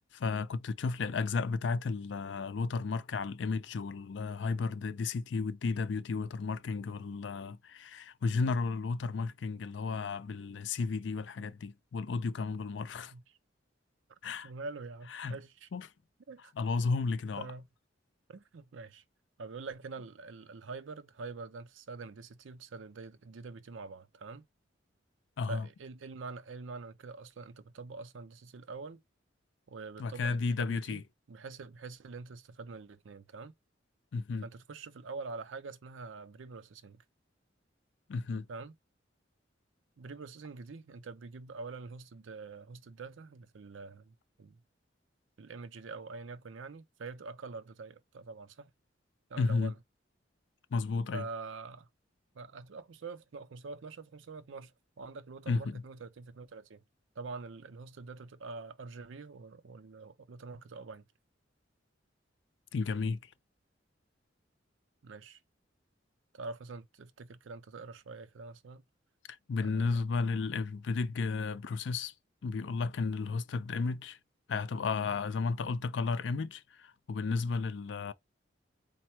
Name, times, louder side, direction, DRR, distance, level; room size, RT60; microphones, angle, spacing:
voice 1, 0.1-13.1 14.2-14.5 15.1-15.4 15.7-15.9 16.6-17.5 25.4-25.7 30.0-31.0 34.1-34.5 38.1-38.5 49.4-49.7 50.7-51.2 55.5-55.8 62.7-63.2 69.5-72.1 72.4-74.2 74.5-78.1, left 4 dB, 70° left, 0.4 m, -33 dB
voice 2, 14.4-15.7 16.3-16.5 17.4-17.7 18.3-19.0 19.4-24.5 25.5-29.0 29.7-31.0 31.3-33.5 34.4-37.0 38.5-38.8 40.0-44.6 45.4-48.7 49.3-49.8 51.1-51.9 52.3-56.8 57.2-61.0 65.0-65.4 66.3-68.8 69.6-70.0, right 4 dB, 85° right, 0.5 m, -45 dB
4.3 x 2.0 x 4.4 m
head